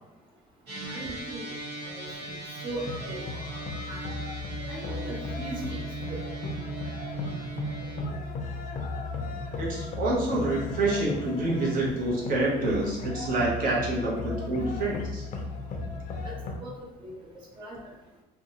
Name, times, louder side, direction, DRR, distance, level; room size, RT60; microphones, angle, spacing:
voice 1, 0.7-1.4 1.8-2.3 2.6-3.2 3.9-4.0 4.7-5.8 6.1-6.2 16.2-16.3 16.6-16.7 17.0-17.1 17.6-17.8, right 2 dB, 30° right, -5 dB, 0.5 m, -38 dB
sound 1, 0.7-8.1, right 3 dB, 80° right, 1.1 m, -39 dB
sound 2, 2.7-16.6, left 3 dB, 50° left, 0.4 m, -36 dB
voice 2, 9.6-15.3, right 2 dB, 55° right, -4 dB, 0.9 m, -27 dB
2.6 x 2.2 x 2.8 m, 1.0 s
cardioid pair, 110°, 17 cm